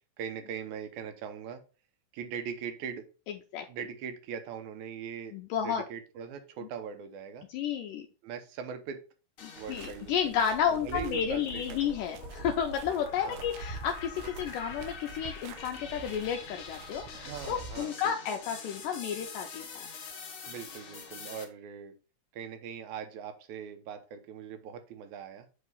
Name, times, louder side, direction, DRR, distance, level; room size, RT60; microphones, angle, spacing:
voice 1, 0.2-1.6 2.1-3.1 3.7-5.4 5.6-7.5 8.2-9.0 9.6-11.9 13.2-13.4 17.1-18.4 20.5-21.9 22.3-25.5, right 7 dB, 70° right, 8 dB, 2.1 m, -41 dB
voice 2, 5.3-5.8 7.5-8.1 9.4-19.6, left 8 dB, 80° left, 3 dB, 2.2 m, -32 dB
sound 1, 9.4-10.2 10.7-21.4, left 5 dB, 60° left, 1.5 m, -46 dB
sound 2, 9.6-17.8, right 4 dB, 85° right, 2.4 m, -45 dB
8.1 x 2.9 x 5.4 m, 0.34 s
omnidirectional pair, 4.0 m